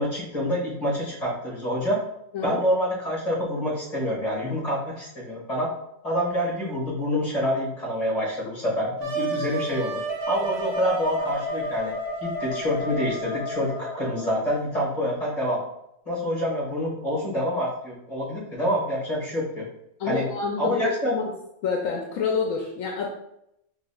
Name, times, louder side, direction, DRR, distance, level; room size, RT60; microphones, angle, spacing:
voice 1, 0.0-2.0 2.4-5.7 6.0-10.0 10.3-11.9 12.2-15.6 16.0-19.6 20.1-20.3 20.6-21.2, equal, 30° left, -5 dB, 1.5 m, -27 dB
Wind instrument woodwind instrument, 9.0-14.5, right 1 dB, 60° right, 1.1 m, -31 dB
voice 2, 20.0-21.3 21.6-23.1, left 5 dB, 75° left, 0 dB, 1.0 m, -28 dB
4.9 x 2.8 x 2.2 m, 0.79 s
omnidirectional pair, 1.4 m